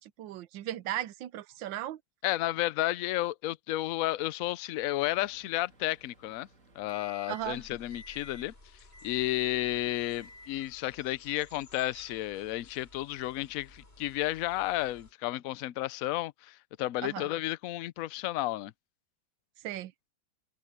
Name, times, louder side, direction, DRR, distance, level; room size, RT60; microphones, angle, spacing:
voice 1, 0.0-2.0 7.3-7.6 17.0-17.3 19.6-19.9, right 13 dB, 85° right, 1.4 m, -37 dB
voice 2, 2.2-6.5 6.8-8.5 9.0-18.7, left 16 dB, 70° left, 0.8 m, -32 dB
Microwave oven, 5.0-7.6 7.9-8.5 8.9-9.5 9.9-10.6, left 1 dB, 45° right, 2.5 m, -54 dB
sound 1, 7.4-15.1, left 2 dB, 30° left, 5.0 m, -55 dB
open air
omnidirectional pair, 2.0 m